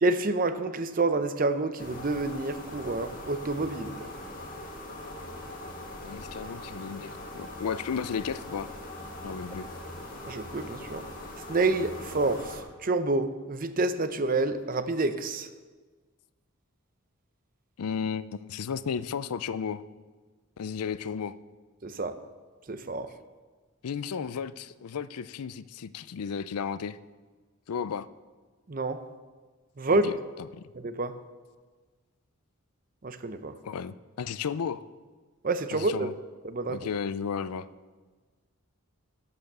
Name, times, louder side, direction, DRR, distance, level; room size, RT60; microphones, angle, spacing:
voice 1, 0.0-4.1 10.2-11.0 11.5-12.5 12.8-15.5 21.8-22.1 22.7-23.1 28.7-29.0 29.8-30.1 30.8-31.1 33.0-33.5 35.4-36.1 36.4-36.8, right 2 dB, 40° right, 0.6 m, -28 dB
sound 1, 1.8-12.6, left 1 dB, 40° left, 1.8 m, -41 dB
voice 2, 6.0-8.7 9.2-9.7 17.8-19.8 20.6-21.4 23.8-27.0 27.7-28.1 29.9-30.6 33.6-34.9 35.7-36.1 36.7-37.7, left 6 dB, 90° left, 0.4 m, -34 dB
11.5 x 6.9 x 6.7 m
head